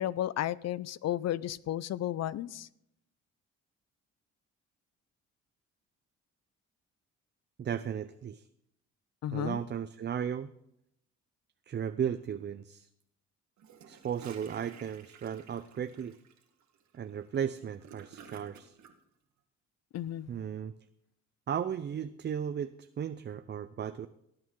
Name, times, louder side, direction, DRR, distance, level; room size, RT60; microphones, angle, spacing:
voice 1, 0.0-2.7 9.2-9.6 19.9-20.3, left 12 dB, 60° left, 0.5 m, -33 dB
voice 2, 7.6-8.4 9.3-10.5 11.7-12.9 13.9-16.2 16.9-18.7 20.3-20.7 21.5-24.1, right 8 dB, 35° right, 0.5 m, -35 dB
Gurgling / Toilet flush, 13.6-18.9, right 7 dB, 65° right, 1.6 m, -54 dB
18.5 x 8.8 x 3.8 m
cardioid pair, 90°, 30 cm